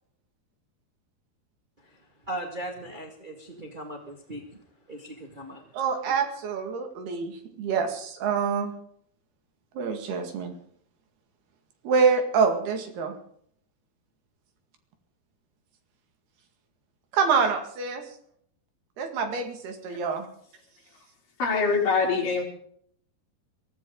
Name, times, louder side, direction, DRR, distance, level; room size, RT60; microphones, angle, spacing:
voice 1, 2.3-4.4 4.9-5.6, right 1 dB, 30° right, 0.8 m, -38 dB
voice 2, 5.7-8.7 9.8-10.5 11.8-13.1 17.1-18.0 19.0-20.3, right 5 dB, 75° right, 4.1 m, -26 dB
voice 3, 21.4-22.4, left 4 dB, 55° left, 5.3 m, -23 dB
22.5 x 16.0 x 3.9 m
omnidirectional pair, 4.7 m